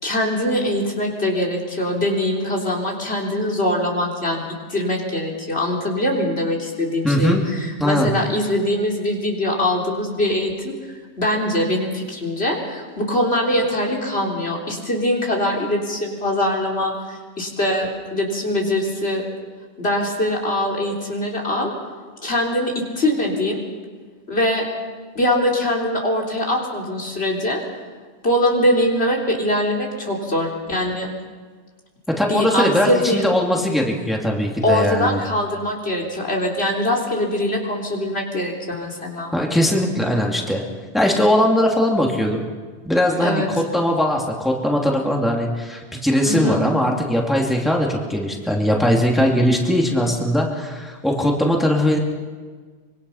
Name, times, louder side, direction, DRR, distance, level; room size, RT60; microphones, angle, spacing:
voice 1, 0.0-4.4 4.7-10.7 11.2-19.2 19.8-21.7 22.2-23.6 24.3-24.6 25.2-27.6 28.2-31.1 32.2-33.2 34.6-39.3 43.2-43.5 46.2-46.6, left 1 dB, 65° left, -1 dB, 3.8 m, -22 dB
voice 2, 7.0-7.4 7.8-8.1 32.2-35.2 39.3-40.6 40.9-42.4 42.8-52.0, equal, ahead, -1 dB, 2.6 m, -20 dB
25.0 x 23.0 x 5.7 m, 1.5 s
omnidirectional pair, 1.1 m